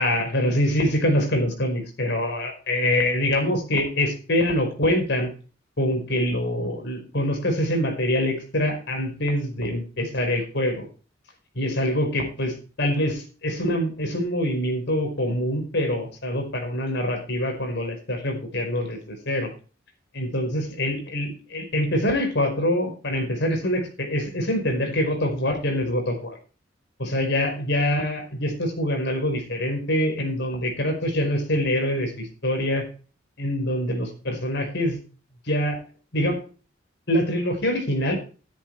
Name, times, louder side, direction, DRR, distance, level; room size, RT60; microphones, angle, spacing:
voice 1, 0.0-5.3 5.8-10.8 11.5-19.5 20.1-26.3 27.0-32.8 33.4-35.0 35.4-35.8 36.1-36.4 37.1-38.1, left 1 dB, 60° left, 4 dB, 4.9 m, -25 dB
11.5 x 10.5 x 4.7 m, 0.36 s
head